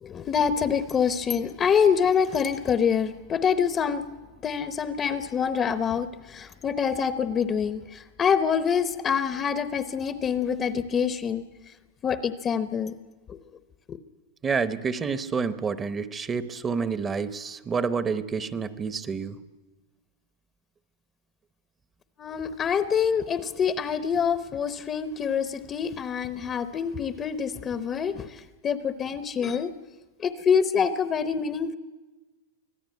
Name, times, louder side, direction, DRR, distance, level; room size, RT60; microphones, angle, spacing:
voice 1, 0.0-4.0 4.4-11.4 12.0-12.9 13.3-13.4 13.9-14.0 22.2-29.7 30.2-31.8, left 7 dB, 20° left, 11 dB, 0.8 m, -26 dB
voice 2, 14.4-19.4, right 5 dB, 15° right, 13 dB, 0.9 m, -28 dB
25.0 x 16.5 x 9.4 m, 1.2 s
supercardioid pair, 150°, 0 cm